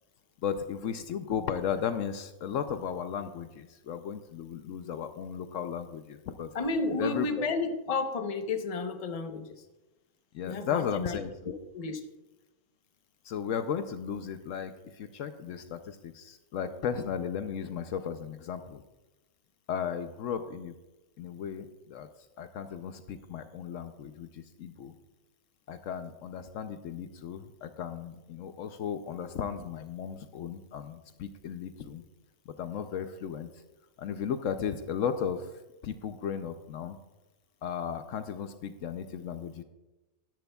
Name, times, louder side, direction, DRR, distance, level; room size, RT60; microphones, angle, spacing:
voice 1, 0.4-6.5 7.0-7.4 10.3-11.6 13.2-18.8 19.7-20.7 21.2-22.1 22.4-24.9 25.7-32.0 32.5-33.5 34.0-35.5 35.8-37.0 37.6-39.6, left 7 dB, 70° left, 9 dB, 0.9 m, -35 dB
voice 2, 6.5-9.6 10.4-11.2 11.7-12.0, left 3 dB, 30° left, 6 dB, 0.8 m, -32 dB
12.5 x 12.0 x 2.3 m, 1.0 s
omnidirectional pair, 1.4 m